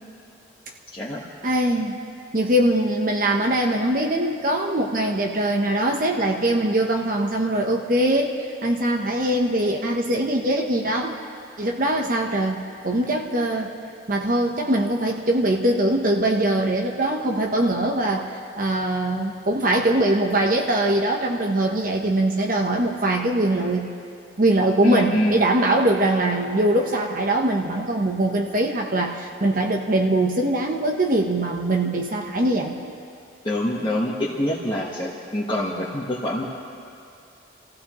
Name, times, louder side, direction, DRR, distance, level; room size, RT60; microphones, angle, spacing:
voice 1, 0.9-1.2 24.8-25.4 33.4-36.4, left 1 dB, 25° left, -6 dB, 1.3 m, -25 dB
voice 2, 1.4-2.0 2.3-11.2 11.6-13.7 14.1-23.9 24.4-32.8, right 1 dB, 45° right, 1 dB, 0.9 m, -22 dB
29.0 x 15.5 x 3.1 m, 2.4 s
head